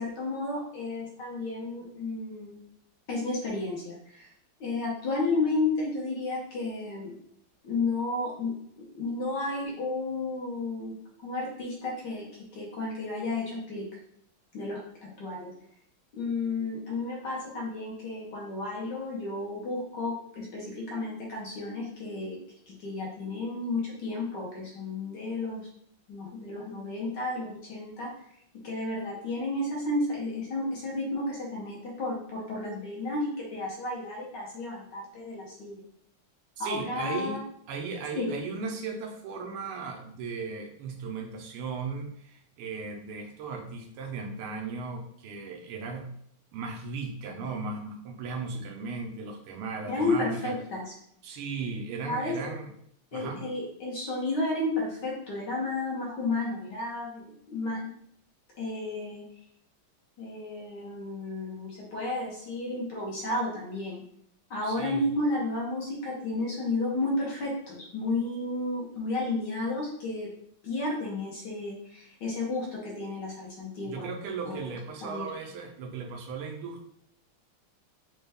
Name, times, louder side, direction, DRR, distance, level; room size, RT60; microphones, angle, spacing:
voice 1, 0.0-2.6 3.1-4.3 4.6-7.1 7.6-10.9 11.2-12.2 12.5-13.8 14.5-15.5 16.1-22.4 22.7-25.7 26.1-28.1 28.6-35.8 36.6-37.4 38.1-38.3 49.9-50.9 52.0-52.4 53.1-57.8 58.6-59.2 60.2-64.0 64.5-70.3 70.6-74.1 74.4-74.7 75.0-75.2, left 2 dB, 60° left, -3 dB, 1.3 m, -32 dB
voice 2, 36.6-37.4 37.7-46.1 46.5-50.5 51.2-52.7 53.1-53.4 64.6-65.1 73.8-76.9, right 4 dB, 80° right, 2 dB, 1.6 m, -36 dB
4.2 x 2.3 x 3.4 m, 0.68 s
omnidirectional pair, 2.4 m